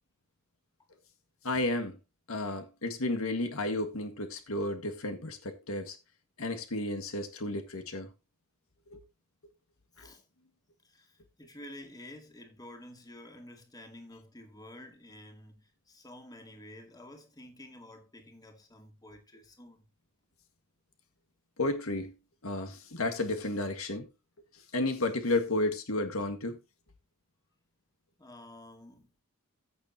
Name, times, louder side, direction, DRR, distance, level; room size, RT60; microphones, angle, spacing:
voice 1, 1.4-2.0 2.3-6.0 6.4-8.1 8.9-9.0 10.0-10.1 21.6-22.1 22.4-24.1 24.7-26.6, left 2 dB, 70° left, 1.7 m, -32 dB
voice 2, 9.9-10.2 10.8-19.9 28.2-29.1, left 1 dB, 20° left, 2.3 m, -50 dB
15.5 x 6.9 x 2.8 m
head